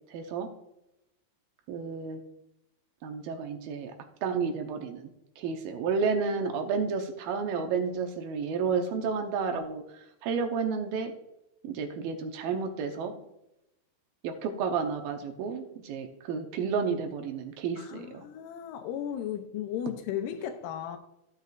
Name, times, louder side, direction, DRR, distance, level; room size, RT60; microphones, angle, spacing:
voice 1, 0.1-0.5 1.7-2.2 3.0-3.9 4.2-5.1 5.4-9.8 10.2-11.1 11.6-13.2 14.2-18.2, right 5 dB, 75° right, 2.5 m, -31 dB
voice 2, 17.8-21.0, left 10 dB, 80° left, 2.1 m, -35 dB
15.0 x 6.7 x 2.5 m
omnidirectional pair, 4.4 m